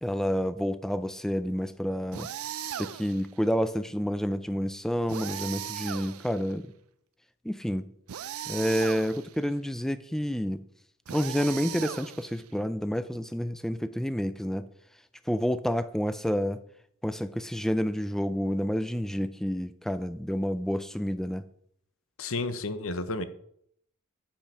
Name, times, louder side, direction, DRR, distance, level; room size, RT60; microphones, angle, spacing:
voice 1, 0.0-2.3 2.8-6.7 7.4-7.9 8.5-10.6 11.1-14.7 15.3-16.6 17.0-21.5, equal, ahead, 12 dB, 0.3 m, -29 dB
sound 1, 2.1-3.3 5.1-6.5 8.1-9.4 11.1-12.5, right 9 dB, 80° right, 0.4 m, -38 dB
voice 2, 22.2-23.2, left 2 dB, 65° left, 11 dB, 0.8 m, -31 dB
8.6 x 5.3 x 5.7 m, 0.69 s
head